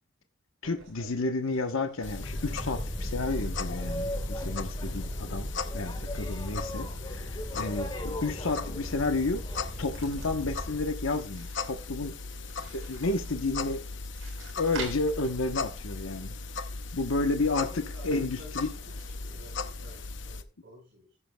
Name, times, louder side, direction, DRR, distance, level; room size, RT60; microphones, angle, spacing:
voice 1, 0.6-9.4 9.8-12.1 12.7-13.8 14.6-16.4 16.9-17.7 18.0-18.7, left 3 dB, 90° left, 7 dB, 1.1 m, -31 dB
sound 1, 0.6-20.1, right 3 dB, 90° right, 4.0 m, -50 dB
sound 2, 2.0-20.4, left 3 dB, 60° left, 0.7 m, -38 dB
Boat Water vehicle, 2.0-10.9, equal, 25° left, 1.6 m, -37 dB
voice 2, 17.4-21.2, equal, 60° right, -4 dB, 5.3 m, -51 dB
14.5 x 9.8 x 2.3 m, 0.32 s
head